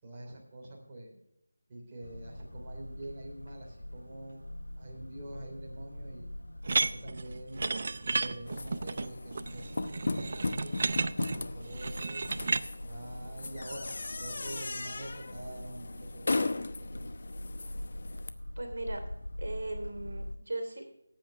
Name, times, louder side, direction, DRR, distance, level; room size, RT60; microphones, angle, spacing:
voice 1, 0.0-1.1 1.7-4.4 4.8-6.3 6.8-7.8 8.1-10.8 11.3-12.3 12.8-16.5 16.8-17.1, right 1 dB, 25° right, -4 dB, 3.3 m, -46 dB
sound 1, 2.0-20.4, left 1 dB, 85° left, 1.1 m, -44 dB
sound 2, 6.6-12.6, right 4 dB, 45° right, 0.5 m, -33 dB
sound 3, 8.5-18.3, left 3 dB, 55° left, 0.8 m, -37 dB
voice 2, 18.6-19.0 19.4-20.9, right 2 dB, 65° right, 4 dB, 3.0 m, -38 dB
18.0 x 8.8 x 3.4 m, 0.82 s
figure-of-eight pair, 165°, 0 cm